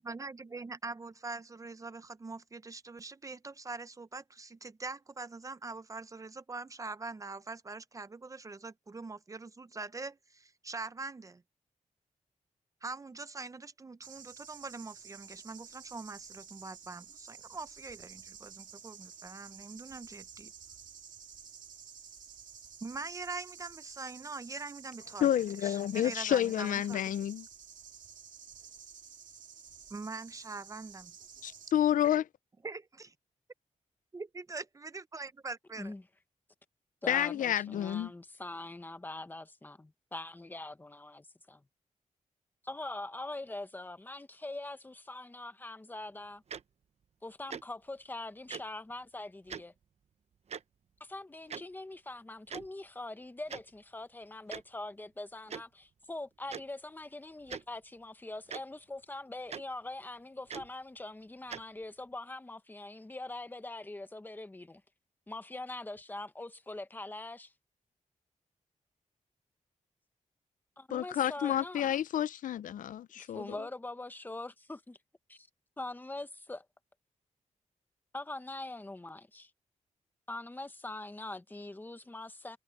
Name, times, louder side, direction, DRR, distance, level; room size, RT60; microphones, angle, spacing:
voice 1, 0.0-11.4 12.8-20.5 22.8-25.3 25.6-27.0 29.9-31.1 32.6-33.1 34.1-35.9, right 3 dB, 25° right, 0.6 m, -43 dB
sound 1, 14.0-31.7, right 7 dB, 70° right, 2.4 m, -52 dB
voice 2, 25.2-27.4 31.4-32.3 37.1-38.1 70.9-73.6, left 11 dB, 90° left, 0.4 m, -30 dB
voice 3, 37.0-41.6 42.6-46.4 47.2-49.7 51.0-64.8 65.3-67.5 70.8-71.9 73.2-75.0 75.3-75.4 75.8-76.6 78.1-79.5 80.3-82.6, left 2 dB, 15° left, 0.9 m, -43 dB
Tick-tock, 46.5-46.6 47.5-47.6 48.5-48.6 49.5-49.6 50.5-50.6 51.5-51.6 52.5-52.7 53.5-53.6 54.5-54.6 55.5-55.6 56.5-56.6 57.5-57.6 58.5-58.6 59.5-59.6 60.5-60.7 61.5-61.6, right 7 dB, 55° right, 0.9 m, -40 dB
wide cardioid pair, 145°, 13 cm